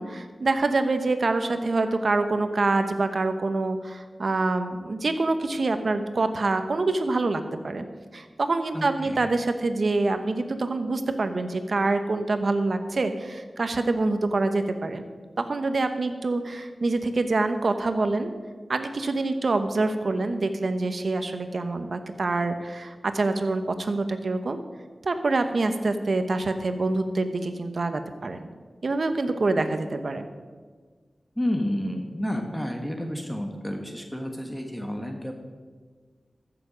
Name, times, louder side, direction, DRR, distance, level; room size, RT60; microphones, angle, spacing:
voice 1, 0.0-7.8 8.1-15.0 15.4-18.3 18.7-24.6 25.0-28.5 28.8-30.3, right 3 dB, 65° right, 8 dB, 0.9 m, -26 dB
voice 2, 8.7-9.3 31.3-35.3, left 1 dB, 5° left, 3 dB, 1.3 m, -30 dB
14.5 x 7.0 x 5.1 m, 1.5 s
wide cardioid pair, 60°, 0 cm